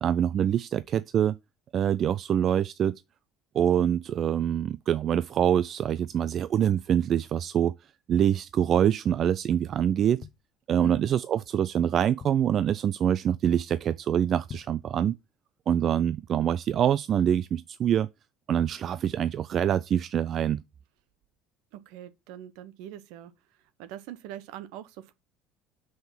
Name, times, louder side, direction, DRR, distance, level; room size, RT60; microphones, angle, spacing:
voice 1, 0.0-1.4 1.7-3.0 3.5-7.7 8.1-10.3 10.7-15.2 15.7-18.1 18.5-20.6, right 9 dB, 50° right, 0.4 m, -25 dB
sound 1, 10.2-11.2 11.7-11.8 11.9-12.7 13.1-13.4 13.7-13.8 14.3-14.9 15.4-15.5, left 7 dB, 45° left, 0.7 m, -46 dB
voice 2, 21.7-23.3 23.8-25.1, right 12 dB, 70° right, 1.0 m, -42 dB
5.9 x 5.2 x 5.7 m
hypercardioid pair, 65°, 0 cm